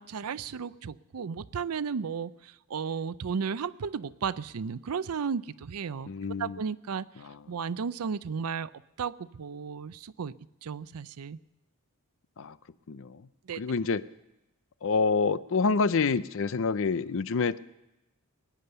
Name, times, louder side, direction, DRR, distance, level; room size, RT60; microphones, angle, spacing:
voice 1, 0.0-6.1 6.4-7.1 7.5-8.7 9.0-10.3 10.6-11.4 13.4-13.6, right 6 dB, 90° right, 17 dB, 0.5 m, -34 dB
voice 2, 6.1-6.6 7.2-7.4 12.4-12.6 12.9-13.2 13.6-14.0 14.8-17.6, left 4 dB, 60° left, 16 dB, 0.6 m, -27 dB
21.0 x 9.9 x 6.8 m, 0.96 s
head